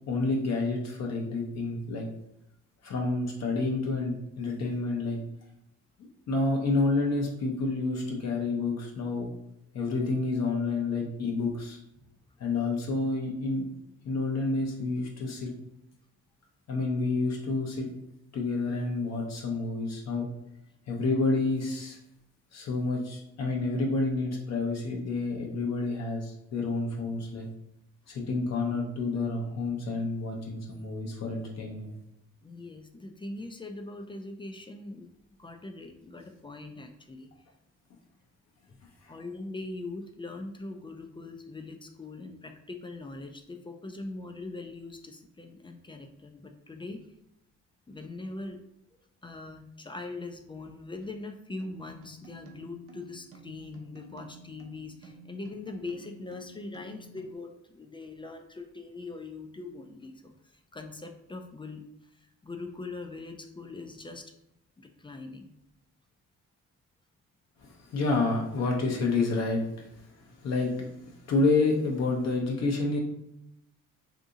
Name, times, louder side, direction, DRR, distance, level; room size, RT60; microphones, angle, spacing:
voice 1, 0.1-2.0 2.8-5.2 6.3-9.3 9.7-11.8 12.4-13.7 14.0-15.5 16.7-17.9 18.3-20.3 20.9-22.0 22.5-27.5 28.1-31.9 67.6-69.9 70.4-70.9 71.3-73.0, left 3 dB, 60° left, 0 dB, 0.7 m, -29 dB
voice 2, 32.4-35.1 35.4-37.3 38.7-38.8 39.1-47.0 47.9-48.6 49.2-64.3 64.8-65.5, left 2 dB, 15° left, 5 dB, 0.3 m, -41 dB
sound 1, 51.6-57.3, equal, 50° right, 0.7 m, -52 dB
2.7 x 2.6 x 3.6 m, 0.82 s
cardioid pair, 90°, 30 cm